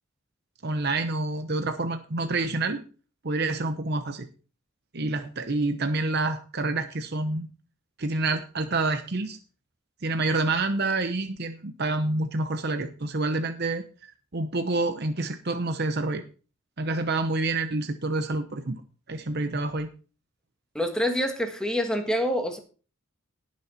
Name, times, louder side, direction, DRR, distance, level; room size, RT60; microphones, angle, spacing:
voice 1, 0.6-2.8 3.2-4.3 4.9-7.5 8.0-9.4 10.0-16.2 16.8-18.8 19.1-19.9, right 2 dB, 50° right, 8 dB, 0.9 m, -28 dB
voice 2, 20.7-22.6, equal, 5° left, 4 dB, 1.5 m, -26 dB
17.5 x 6.3 x 4.4 m, 0.37 s
head